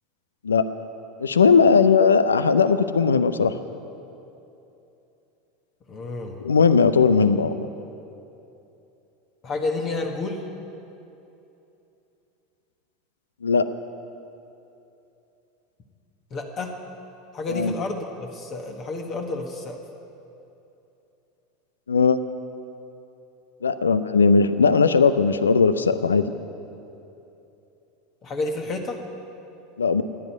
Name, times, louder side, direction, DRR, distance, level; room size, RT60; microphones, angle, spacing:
voice 1, 1.2-3.5 6.4-7.5 13.4-13.7 17.5-17.7 21.9-22.2 23.6-26.2 29.8-30.0, left 5 dB, 75° left, 13 dB, 0.6 m, -18 dB
voice 2, 5.9-6.4 9.4-10.5 16.3-16.7 17.3-19.8 28.2-29.0, left 3 dB, 35° left, 2 dB, 1.6 m, -30 dB
15.5 x 9.9 x 9.3 m, 2.9 s
figure-of-eight pair, 80°, 0 cm